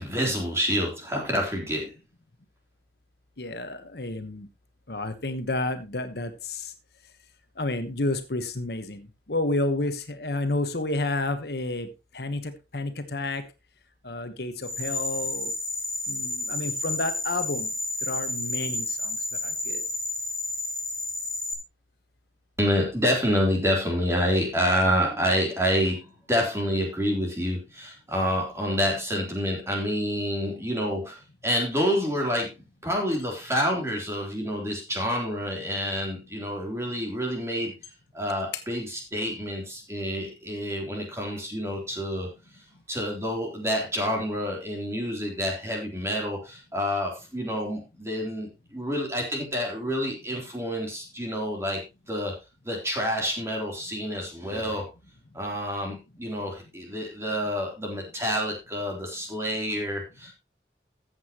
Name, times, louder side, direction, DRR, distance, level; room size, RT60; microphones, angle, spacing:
voice 1, 0.0-1.9 22.6-32.5 32.8-37.7 38.1-42.3 42.9-51.8 52.1-52.3 52.6-54.9 55.3-60.3, equal, 15° right, -1 dB, 3.4 m, -28 dB
voice 2, 3.4-4.5 4.9-6.7 7.6-11.9 12.1-13.4 14.0-15.5 16.1-17.7 18.0-19.2 19.4-19.8 38.5-38.6, left 2 dB, 65° left, 9 dB, 1.2 m, -30 dB
sound 1, 14.6-21.5, left 2 dB, ahead, 2.8 m, -31 dB
14.5 x 7.9 x 3.0 m, 0.26 s
head